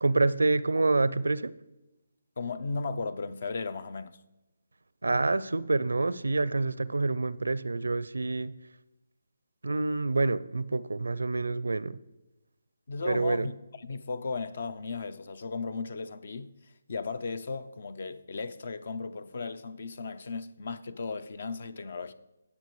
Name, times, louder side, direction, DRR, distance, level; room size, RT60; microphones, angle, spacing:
voice 1, 0.0-1.5 5.0-8.5 9.6-12.0 13.0-13.5, right 3 dB, 75° right, 0.5 m, -27 dB
voice 2, 2.4-4.2 12.9-16.5 16.9-22.1, left 4 dB, 55° left, 0.7 m, -36 dB
18.5 x 7.0 x 3.1 m
figure-of-eight pair, 150°, 0 cm